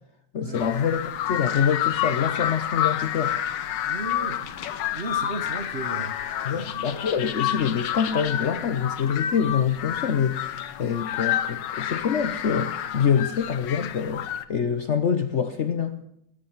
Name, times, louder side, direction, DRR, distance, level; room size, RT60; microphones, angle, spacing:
voice 1, 0.3-3.4 6.4-16.0, left 7 dB, 55° left, 0.9 m, -25 dB
sound 1, 0.5-14.5, left 10 dB, 85° left, 1.5 m, -29 dB
voice 2, 3.9-4.5 4.9-6.1 6.5-6.9, right 2 dB, 40° right, 1.2 m, -35 dB
21.0 x 8.8 x 7.3 m
omnidirectional pair, 1.9 m